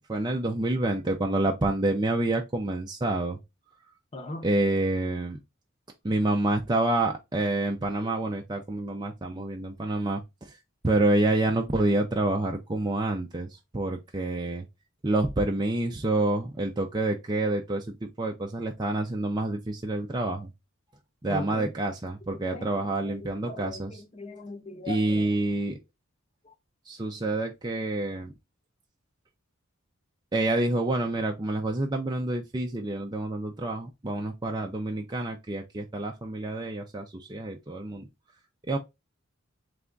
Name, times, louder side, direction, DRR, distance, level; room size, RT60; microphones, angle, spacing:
voice 1, 0.0-3.4 4.4-5.4 6.0-10.6 10.8-14.7 15.0-20.5 21.2-24.0 24.9-25.8 26.9-28.3 30.3-38.1 38.7-38.8, right 2 dB, 20° right, 0.5 m, -28 dB
voice 2, 4.1-4.5 21.3-21.7 22.3-25.3 26.4-26.5, left 2 dB, 30° left, 0.8 m, -40 dB
3.5 x 3.4 x 3.8 m
head